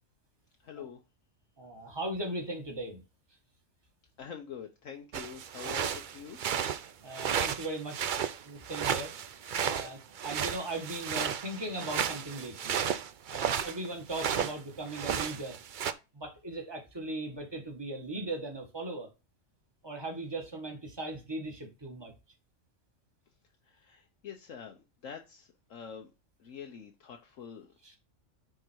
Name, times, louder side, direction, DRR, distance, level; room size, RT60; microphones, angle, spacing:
voice 1, 0.6-1.0 4.2-6.4 23.6-26.1 26.4-27.7, left 7 dB, 70° left, 1.3 m, -45 dB
voice 2, 1.6-3.0 7.0-9.1 9.6-12.8 13.3-15.6 16.1-19.1 19.8-22.1 27.8-28.0, right 2 dB, 20° right, 1.8 m, -38 dB
sound 1, 5.1-14.6 14.9-15.9, right 8 dB, 55° right, 0.5 m, -33 dB
9.5 x 3.9 x 4.5 m
omnidirectional pair, 1.4 m